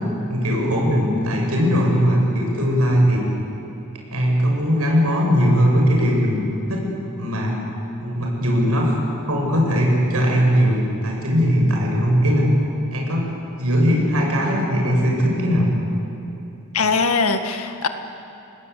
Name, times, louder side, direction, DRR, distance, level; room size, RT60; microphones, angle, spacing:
voice 1, 0.3-3.2 4.1-6.4 6.7-6.9 7.2-7.5 8.0-9.0 9.3-12.5 12.9-13.2 13.6-15.7, equal, 80° right, -1 dB, 7.3 m, -19 dB
voice 2, 16.7-17.9, left 4 dB, 80° left, 6 dB, 1.9 m, -21 dB
28.0 x 20.0 x 8.5 m, 2.8 s
head